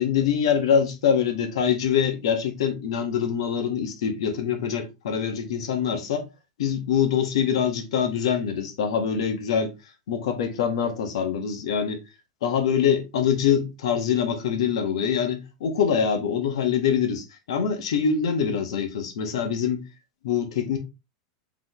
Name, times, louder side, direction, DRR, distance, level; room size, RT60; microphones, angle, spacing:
voice 1, 0.0-6.2 6.6-9.7 10.1-12.0 12.4-19.8 20.2-20.8, left 7 dB, 80° left, 1.4 m, -24 dB
4.1 x 3.7 x 3.0 m
supercardioid pair, 145°, 3 cm